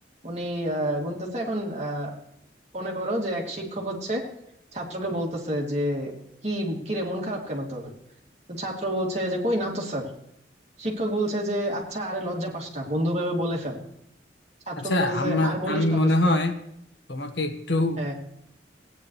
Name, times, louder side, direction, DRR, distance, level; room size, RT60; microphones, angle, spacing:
voice 1, 0.2-2.1 2.7-4.2 4.7-6.1 6.4-8.0 8.5-10.1 10.8-13.8 14.7-16.4 18.0-18.1, equal, 40° right, -1 dB, 2.7 m, -29 dB
voice 2, 14.8-16.6 17.1-18.0, left 2 dB, 75° left, 7 dB, 1.3 m, -24 dB
17.5 x 9.7 x 3.2 m, 0.75 s
head